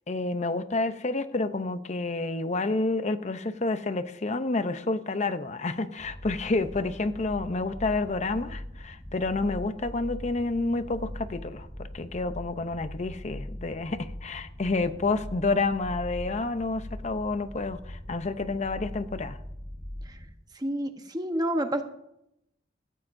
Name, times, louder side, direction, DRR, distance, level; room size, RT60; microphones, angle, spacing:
voice 1, 0.1-11.7 11.9-19.4, left 3 dB, 40° left, 11 dB, 0.7 m, -29 dB
sound 1, 6.0-20.3, left 1 dB, 15° left, 1.4 m, -41 dB
voice 2, 20.6-21.8, right 1 dB, 20° right, 6 dB, 1.0 m, -28 dB
16.0 x 14.0 x 2.6 m, 0.82 s
head